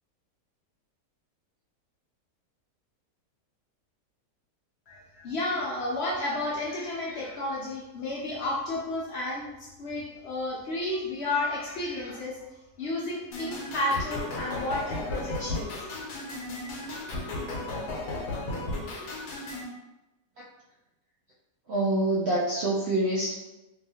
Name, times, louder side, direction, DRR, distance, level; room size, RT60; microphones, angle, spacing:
voice 1, 4.9-12.4 12.8-15.8, left 2 dB, 65° left, -5 dB, 0.6 m, -32 dB
sound 1, 13.3-19.7, left 2 dB, 80° left, 1.2 m, -34 dB
voice 2, 21.7-23.3, right 1 dB, 90° right, -6 dB, 0.5 m, -26 dB
2.7 x 2.4 x 2.7 m, 1.0 s
omnidirectional pair, 1.7 m